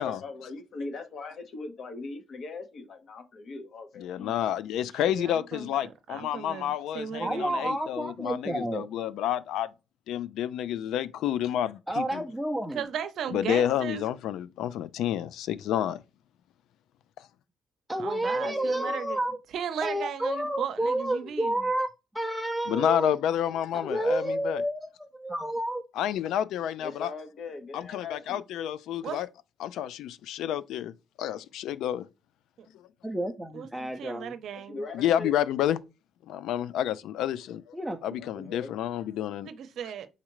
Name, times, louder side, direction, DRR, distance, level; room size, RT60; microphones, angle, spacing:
voice 1, 0.0-4.4 18.3-19.0 26.8-28.4 34.7-35.3 38.2-38.7, left 3 dB, 60° left, 1.1 m, -40 dB
voice 2, 4.0-9.7 10.1-12.2 13.3-16.0 22.7-24.6 26.0-27.1 27.7-29.3 29.6-30.9 31.2-32.1 32.7-32.9 34.9-35.8 36.3-37.8 38.0-39.5, left 10 dB, 85° left, 0.3 m, -29 dB
voice 3, 5.1-7.7 12.7-14.0 18.0-19.2 19.5-21.7 29.0-29.2 32.6-32.7 33.5-34.8 39.4-40.1, right 8 dB, 70° right, 0.6 m, -36 dB
voice 4, 7.2-8.9 11.9-12.8 17.9-19.4 19.8-21.9 22.1-23.1 23.7-25.8 33.0-34.3 37.7-38.0 38.4-38.5, right 1 dB, ahead, 0.5 m, -30 dB
4.1 x 3.7 x 3.0 m
cardioid pair, 90°, 0 cm